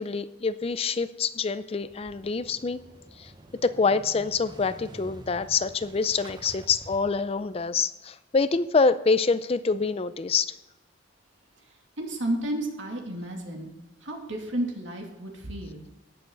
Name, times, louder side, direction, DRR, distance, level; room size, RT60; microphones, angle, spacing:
voice 1, 0.0-2.8 3.2-3.3 3.6-10.6, left 4 dB, 30° left, 14 dB, 0.4 m, -26 dB
Motorcycle / Engine starting, 1.8-7.7, right 1 dB, 20° right, 0.6 m, -48 dB
voice 2, 12.0-13.7 14.0-16.0, right 1 dB, 75° right, 1 dB, 2.5 m, -32 dB
18.5 x 7.0 x 3.9 m, 1.0 s
head